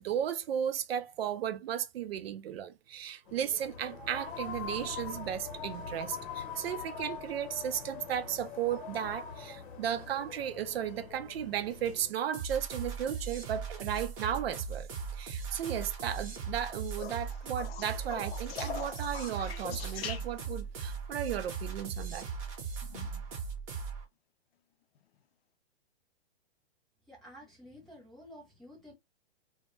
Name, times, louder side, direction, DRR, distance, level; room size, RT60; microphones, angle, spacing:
voice 1, 0.0-14.9 15.1-22.3, right 9 dB, 65° right, 0.5 m, -35 dB
sound 1, 3.3-12.1, left 6 dB, 50° left, 0.9 m, -43 dB
sound 2, 12.3-24.0, right 5 dB, 35° right, 0.8 m, -39 dB
sound 3, 17.0-20.7 22.8-23.3 25.0-25.1, left 8 dB, 70° left, 0.5 m, -42 dB
voice 2, 27.0-28.9, equal, ahead, 0.5 m, -51 dB
2.1 x 2.1 x 3.0 m
hypercardioid pair, 145°, 32 cm